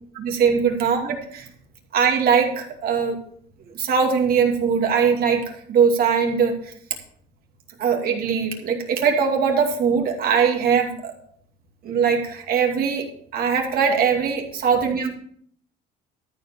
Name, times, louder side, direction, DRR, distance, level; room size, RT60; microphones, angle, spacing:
voice 1, 0.1-1.5 1.9-3.2 3.7-5.4 5.7-6.5 7.8-11.1 11.8-13.0 13.3-15.1, right 6 dB, 60° right, 2 dB, 2.5 m, -21 dB
13.5 x 4.7 x 7.1 m, 0.63 s
cardioid pair, 110°, 17 cm